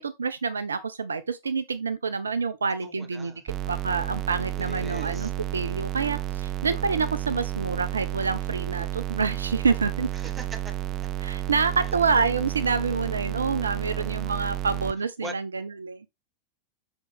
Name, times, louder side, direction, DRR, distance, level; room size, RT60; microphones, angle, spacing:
voice 1, 0.0-3.3 3.7-10.1 11.2-16.1, right 5 dB, 75° right, 0.6 m, -27 dB
voice 2, 2.8-3.4 4.5-5.3 10.1-10.7 13.9-14.2 15.2-15.4, right 2 dB, 15° right, 2.0 m, -41 dB
sound 1, 3.5-14.9, right 13 dB, 35° right, 0.4 m, -31 dB
7.2 x 6.3 x 3.4 m
figure-of-eight pair, 90°, 0 cm